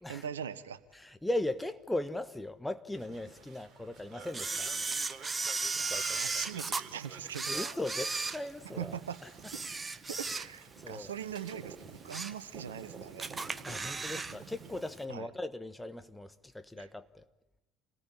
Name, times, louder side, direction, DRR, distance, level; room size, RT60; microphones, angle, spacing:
voice 1, 0.1-0.8 5.7-7.5 8.8-9.2 9.5-9.6 10.2-13.3 15.1-15.3 16.8-16.9, right 8 dB, 75° right, 1.1 m, -41 dB
voice 2, 0.9-4.7 5.7-6.4 7.5-9.0 10.8-11.1 13.6-17.2, left 1 dB, 5° left, 1.4 m, -38 dB
sound 1, 2.9-14.8, right 6 dB, 35° right, 3.7 m, -50 dB
Camera, 4.3-6.8 7.3-8.9 9.4-10.8 11.1-11.3 11.8-12.4 12.8-12.9 13.2-14.4 14.6-14.7, right 3 dB, 20° right, 1.2 m, -35 dB
27.5 x 19.0 x 9.9 m
figure-of-eight pair, 60°, 0 cm